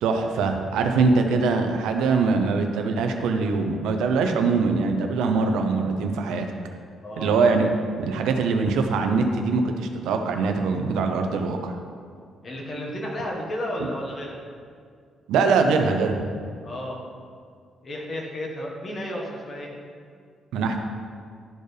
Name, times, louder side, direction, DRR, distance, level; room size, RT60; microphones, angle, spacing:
voice 1, 0.0-6.5 7.2-7.7 8.0-11.7 13.8-13.9 15.3-16.3 20.5-20.8, right 4 dB, 90° right, 5 dB, 0.7 m, -22 dB
voice 2, 7.0-7.4 12.4-14.3 16.6-17.0 17.8-19.7, left 1 dB, 40° left, -1 dB, 1.5 m, -32 dB
12.0 x 4.4 x 3.4 m, 2.2 s
cardioid pair, 90°, 0 cm